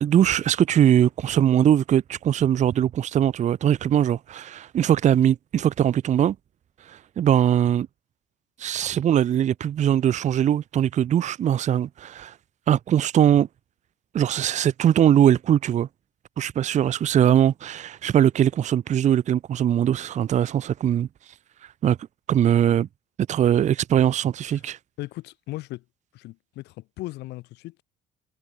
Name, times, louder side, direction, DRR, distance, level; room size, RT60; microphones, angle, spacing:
voice 1, 0.0-6.4 6.9-7.9 8.6-12.3 12.7-13.5 14.1-15.9 16.4-21.1 21.8-22.0 22.3-22.9 23.3-24.8, right 10 dB, 45° right, 0.7 m, -21 dB
voice 2, 25.0-25.8 26.1-27.8, left 18 dB, 85° left, 5.6 m, -37 dB
cardioid pair, 110°, 17 cm